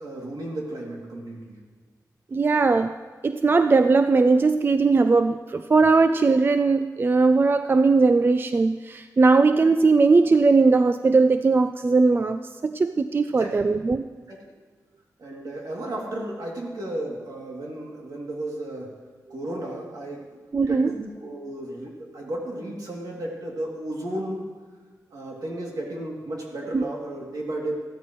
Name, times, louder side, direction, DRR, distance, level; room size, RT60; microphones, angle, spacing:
voice 1, 0.0-1.6 13.4-13.7 14.3-14.4 15.2-18.9 19.3-20.3 20.7-24.5 25.1-27.8, right 1 dB, 70° right, -2 dB, 2.7 m, -33 dB
voice 2, 2.3-2.9 3.2-14.1 20.5-20.9 26.7-26.9, right 3 dB, 35° right, 10 dB, 0.3 m, -19 dB
15.0 x 13.0 x 3.1 m, 1.4 s
wide cardioid pair, 115°, 7 cm